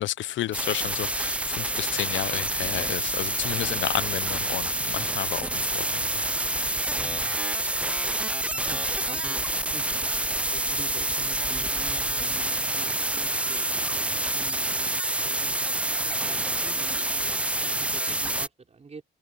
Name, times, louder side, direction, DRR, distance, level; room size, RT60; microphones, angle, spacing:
voice 1, 0.0-6.2 6.5-6.8, left 14 dB, 70° left, 0.6 m, -32 dB
sound 1, 0.5-18.5, right 1 dB, 5° right, 0.4 m, -27 dB
sound 2, 1.1-12.5, left 1 dB, 10° left, 7.9 m, -45 dB
voice 2, 6.9-7.4 8.5-9.5 9.7-9.9 10.4-15.6 15.9-19.0, right 4 dB, 35° right, 5.1 m, -46 dB
cardioid pair, 90°, 20 cm